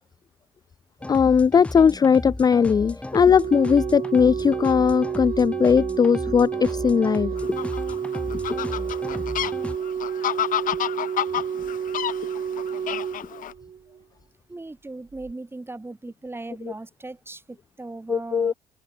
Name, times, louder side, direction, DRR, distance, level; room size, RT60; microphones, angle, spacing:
sound 1, 1.0-9.8, left 1 dB, 5° left, 0.8 m, -35 dB
voice 1, 1.1-7.3 8.3-8.4 18.1-18.5, left 6 dB, 25° left, 0.4 m, -19 dB
Organ, 3.1-14.0 15.1-15.3, right 8 dB, 40° right, 3.0 m, -30 dB
Fowl, 7.4-13.5, left 11 dB, 55° left, 0.9 m, -30 dB
voice 2, 14.5-18.5, right 2 dB, 15° right, 6.3 m, -38 dB
open air
cardioid pair, 110°, 17 cm